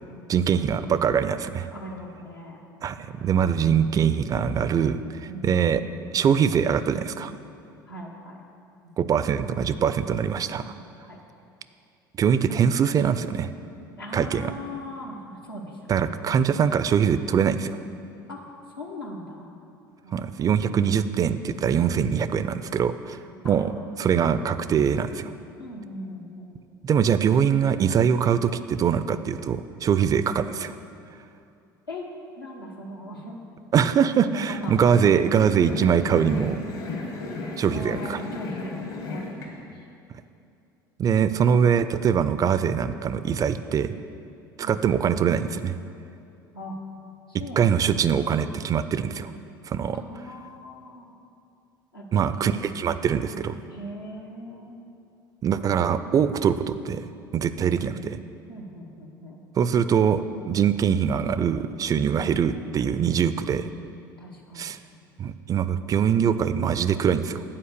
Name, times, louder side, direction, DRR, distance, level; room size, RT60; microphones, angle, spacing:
voice 1, 0.3-1.7 2.8-5.0 5.4-5.8 6.1-7.3 9.0-10.7 12.2-13.5 14.1-14.5 15.9-17.8 20.1-23.2 23.4-23.7 24.0-25.3 26.8-30.7 33.7-36.6 37.6-38.2 41.0-43.9 44.6-45.8 47.6-49.3 49.7-50.0 52.1-53.6 55.4-57.1 57.3-58.2 59.6-63.7 64.6-64.8 65.2-67.4, right 7 dB, 30° right, 12 dB, 0.3 m, -23 dB
voice 2, 1.7-2.6 3.0-3.4 5.3-5.6 7.9-8.4 8.8-8.9 10.5-11.2 14.0-16.1 18.3-18.4 18.7-19.5 20.0-20.3 23.4-23.6 25.6-26.6 30.0-30.1 31.9-32.0 32.4-33.4 34.3-34.9 37.7-39.8 44.6-44.8 46.5-46.8 47.4-47.7 49.9-51.2 51.9-52.6 53.7-54.8 57.7-57.9 58.5-59.4 61.9-62.1 62.9-63.0 64.2-64.8, left 1 dB, 90° left, -2 dB, 1.0 m, -40 dB
sound 1, 34.3-39.5, left 3 dB, 60° left, 1.4 m, -35 dB
8.7 x 4.6 x 6.7 m, 2.6 s
figure-of-eight pair, 65°, 12 cm